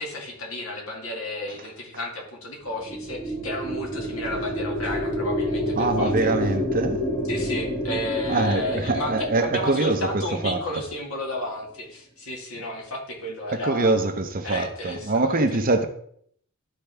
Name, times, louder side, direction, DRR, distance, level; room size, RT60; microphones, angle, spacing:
voice 1, 0.0-6.5 7.3-14.0 14.4-15.4, left 1 dB, 70° left, 2.0 m, -32 dB
sound 1, 2.6-11.2, equal, 40° left, 2.5 m, -29 dB
voice 2, 5.8-7.0 8.3-10.6 13.5-15.9, right 2 dB, 40° right, 0.7 m, -24 dB
12.0 x 4.6 x 3.4 m
head